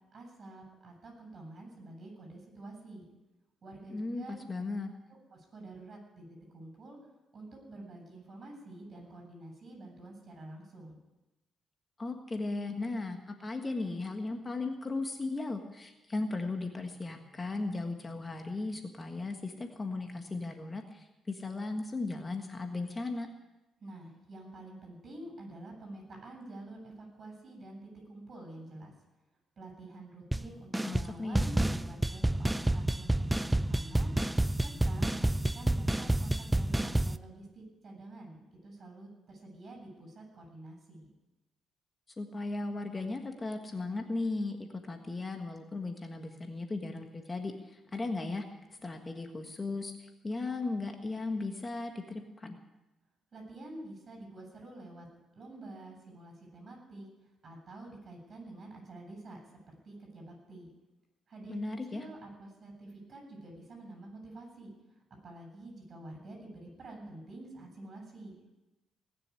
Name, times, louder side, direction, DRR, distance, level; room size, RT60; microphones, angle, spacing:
voice 1, 0.1-3.0 3.6-4.4 5.3-7.0 7.3-11.0 23.8-28.9 29.6-41.1 53.3-55.1 55.3-59.4 59.7-60.7 61.3-61.6 61.8-68.3, right 2 dB, 45° right, 2 dB, 8.0 m, -48 dB
voice 2, 3.9-4.9 12.0-23.3 30.8-31.5 42.2-48.4 48.7-52.6 61.5-62.1, left 3 dB, 25° left, 5 dB, 1.5 m, -36 dB
sound 1, 30.3-30.4 30.7-31.1 31.3-37.2, right 1 dB, 10° right, 0.5 m, -29 dB
19.5 x 7.1 x 9.8 m, 1.0 s
cardioid pair, 90°, 0 cm